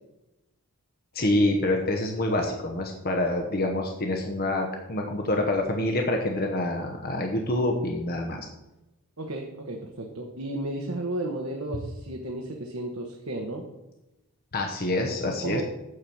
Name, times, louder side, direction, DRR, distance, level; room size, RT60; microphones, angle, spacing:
voice 1, 1.1-8.5 14.5-15.6, left 1 dB, 45° left, 2 dB, 1.0 m, -26 dB
voice 2, 9.2-13.6 15.2-15.6, right 1 dB, 65° right, 1 dB, 1.1 m, -33 dB
9.6 x 4.6 x 7.1 m, 0.96 s
head